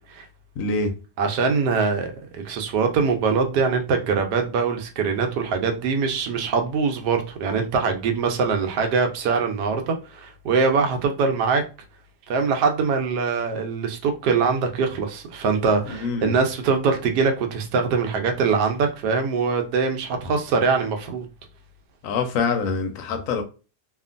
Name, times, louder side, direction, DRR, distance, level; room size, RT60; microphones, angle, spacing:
voice 1, 0.6-0.9 15.9-16.4 22.0-23.4, left 4 dB, 65° left, 0.9 m, -25 dB
voice 2, 1.2-11.6 12.3-21.3, right 5 dB, 85° right, 1.2 m, -23 dB
2.8 x 2.4 x 2.4 m
omnidirectional pair, 1.7 m